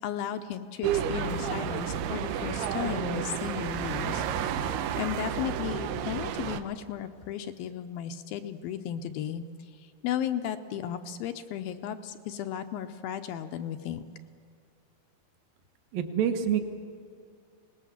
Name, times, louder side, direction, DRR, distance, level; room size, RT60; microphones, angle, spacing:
voice 1, 0.0-4.2 5.0-14.0, left 9 dB, 80° left, 8 dB, 2.3 m, -35 dB
sound 1, 0.8-6.6, right 8 dB, 85° right, 2.9 m, -31 dB
voice 2, 15.9-16.6, right 9 dB, 65° right, 7 dB, 2.8 m, -26 dB
24.0 x 19.5 x 7.2 m, 2.3 s
omnidirectional pair, 4.6 m